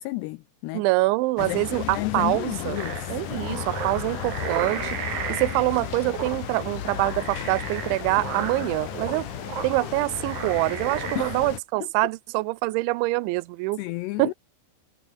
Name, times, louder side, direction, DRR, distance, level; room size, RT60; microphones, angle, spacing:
voice 1, 0.0-0.8 1.4-3.2 11.2-11.4 13.8-14.3, left 20 dB, 85° left, 2.4 m, -32 dB
voice 2, 0.7-2.8 3.1-5.0 5.3-9.3 9.6-13.8 14.2-14.3, right 21 dB, 85° right, 2.9 m, -25 dB
sound 1, 1.4-11.6, left 12 dB, 65° left, 2.1 m, -34 dB
sound 2, 2.8-11.4, right 8 dB, 55° right, 4.3 m, -35 dB
omnidirectional pair, 5.4 m